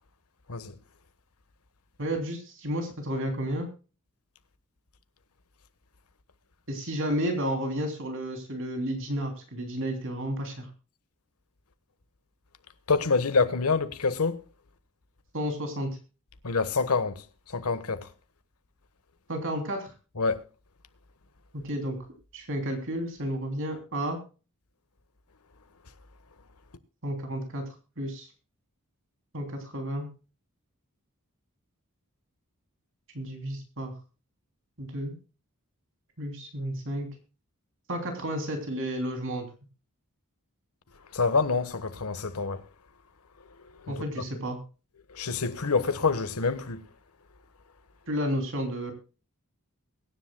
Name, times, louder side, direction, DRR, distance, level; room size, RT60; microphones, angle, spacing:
voice 1, 2.0-3.7 6.7-10.7 15.3-15.9 19.3-19.9 21.5-22.0 22.3-24.2 27.0-27.6 28.0-28.3 29.3-30.1 33.1-33.9 34.8-35.2 36.2-37.1 37.9-39.4 43.9-44.6 48.1-48.9, equal, 60° right, 3.1 m, -31 dB
voice 2, 12.9-14.4 16.4-18.1 20.2-20.4 41.1-42.6 43.6-44.2 45.1-46.9, left 4 dB, 80° left, 1.3 m, -27 dB
23.0 x 10.5 x 2.2 m
head